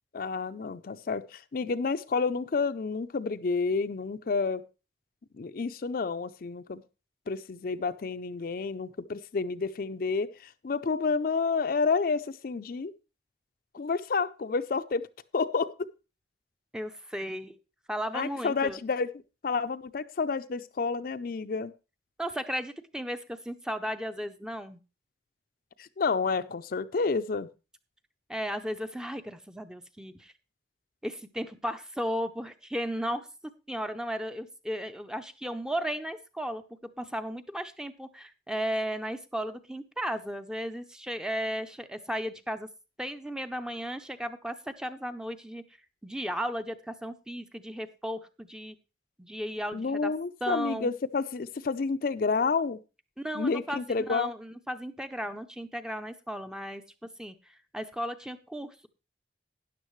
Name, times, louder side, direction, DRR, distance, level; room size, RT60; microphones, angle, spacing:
voice 1, 0.1-4.6 5.3-6.8 7.3-12.9 13.7-15.1 15.3-15.9 18.1-19.1 19.4-21.7 25.8-27.5 49.7-52.8 53.3-54.3, left 4 dB, 50° left, 11 dB, 0.4 m, -30 dB
voice 2, 16.7-17.6 17.9-18.8 22.2-24.8 28.3-30.3 31.0-33.3 33.7-36.6 37.0-42.7 43.0-45.6 46.0-48.8 49.2-50.1 50.4-50.9 53.2-56.8 57.2-58.9, equal, 5° right, 9 dB, 0.5 m, -35 dB
13.0 x 10.0 x 3.1 m, 0.31 s
head